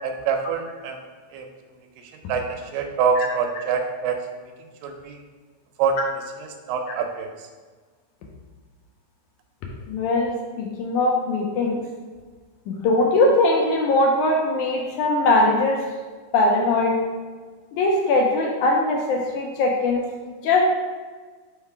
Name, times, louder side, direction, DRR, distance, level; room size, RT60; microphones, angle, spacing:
voice 1, 0.0-1.0 1.3-1.5 2.3-2.5 2.7-4.2 4.8-5.2 5.8-6.0 6.4-7.3, right 6 dB, 80° right, 4 dB, 2.2 m, -25 dB
voice 2, 9.9-11.9 12.7-15.8 16.3-17.0 17.7-20.0 20.4-20.6, left 2 dB, 75° left, 0 dB, 1.9 m, -21 dB
5.4 x 3.8 x 4.6 m, 1.4 s
omnidirectional pair, 4.0 m